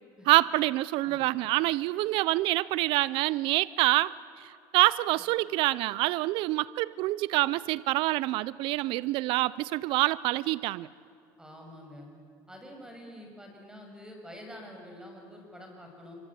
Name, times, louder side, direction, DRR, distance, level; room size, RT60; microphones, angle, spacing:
voice 1, 0.3-10.9, right 18 dB, 70° right, 20 dB, 0.6 m, -26 dB
voice 2, 11.4-12.1 12.5-16.1, equal, 10° right, 2 dB, 6.9 m, -47 dB
26.0 x 25.0 x 8.9 m, 2.5 s
cardioid pair, 115°, 9 cm